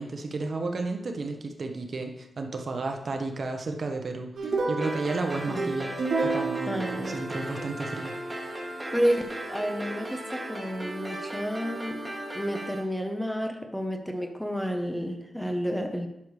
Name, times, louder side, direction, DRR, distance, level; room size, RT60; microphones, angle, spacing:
voice 1, 0.0-5.9 6.2-8.1, right 3 dB, 55° right, 4 dB, 1.1 m, -32 dB
sound 1, 4.4-7.8, right 3 dB, 90° right, 3.0 m, -30 dB
sound 2, 4.8-12.8, right 1 dB, 15° right, 2.3 m, -37 dB
voice 2, 5.5-6.0 6.7-7.2 8.9-9.2 9.5-16.1, equal, 5° left, 5 dB, 0.9 m, -30 dB
10.5 x 6.6 x 3.2 m, 0.83 s
wide cardioid pair, 95°, 0 cm